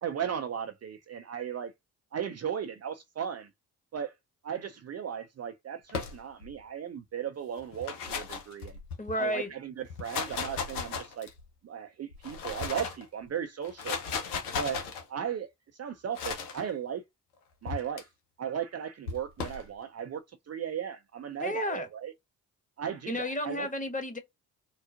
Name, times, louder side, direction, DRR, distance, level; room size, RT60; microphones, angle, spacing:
voice 1, 0.0-1.7 2.1-3.5 3.9-4.1 4.4-8.7 9.2-11.3 11.6-14.0 14.5-15.5 15.8-17.0 17.6-18.1 18.4-22.1 22.8-23.7, right 8 dB, 35° right, 0.6 m, -36 dB
sound 1, 5.9-6.6 7.6-9.1 9.8-11.5 12.1-13.0 13.6-15.0 16.1-16.6 17.7-18.0 19.1-19.7, left 5 dB, 85° left, 0.8 m, -36 dB
voice 2, 9.0-9.5 21.4-21.9 23.1-24.2, left 1 dB, 20° left, 1.3 m, -32 dB
3.8 x 2.3 x 2.5 m
hypercardioid pair, 40°, 44 cm